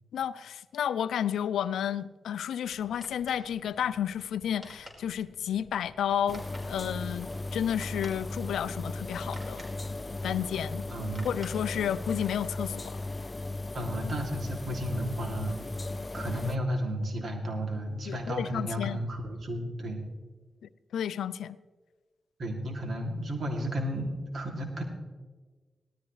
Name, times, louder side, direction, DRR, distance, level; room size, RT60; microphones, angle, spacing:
voice 1, 0.1-9.6 10.2-10.8 11.2-13.0 18.1-19.0 20.6-21.6, left 9 dB, 85° left, 16 dB, 0.4 m, -31 dB
sound 1, 2.6-12.3, equal, 35° right, 4.6 m, -53 dB
sound 2, 6.3-16.6, left 2 dB, 35° left, 0.7 m, -37 dB
voice 2, 10.9-11.3 13.7-15.6 16.1-20.0 22.4-24.8, equal, 65° right, 2 dB, 2.7 m, -33 dB
18.0 x 13.5 x 3.2 m, 1.3 s
supercardioid pair, 40°, 0 cm